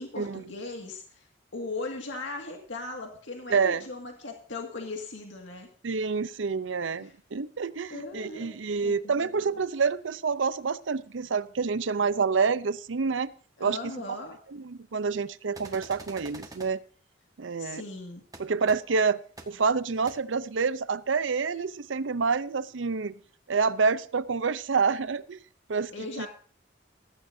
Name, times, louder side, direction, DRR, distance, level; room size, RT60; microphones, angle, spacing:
voice 1, 0.0-5.7 7.0-7.1 7.9-8.5 8.8-9.3 13.6-14.4 17.6-18.2 25.9-26.3, left 3 dB, 80° left, 2 dB, 2.0 m, -38 dB
voice 2, 3.5-3.9 5.8-13.3 13.6-13.8 14.1-14.2 14.5-16.8 17.4-17.8 18.4-19.2 19.5-23.1 23.5-25.4 25.7-25.9 26.2-26.3, right 5 dB, 85° right, 16 dB, 0.6 m, -27 dB
sound 1, 15.5-16.7 18.3-18.4 18.7-18.8 19.4-19.5 20.1-20.2, right 2 dB, 20° right, 1.5 m, -44 dB
15.5 x 14.0 x 2.7 m, 0.44 s
head